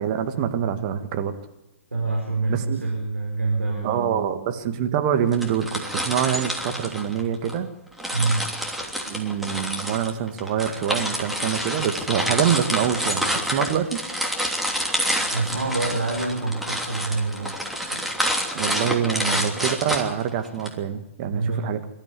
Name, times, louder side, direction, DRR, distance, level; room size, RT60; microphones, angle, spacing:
voice 1, 0.0-1.3 2.5-2.8 3.8-7.7 9.1-14.0 18.5-21.8, right 9 dB, 35° right, 7 dB, 2.0 m, -25 dB
voice 2, 1.9-4.3 8.1-8.5 15.3-17.5 17.9-18.0 19.3-19.5 21.3-21.7, right 3 dB, 80° right, 0 dB, 4.5 m, -26 dB
sound 1, 5.3-7.6 8.0-20.7, equal, ahead, 3.0 m, -28 dB
25.0 x 13.0 x 9.8 m, 0.96 s
figure-of-eight pair, 120°, 7 cm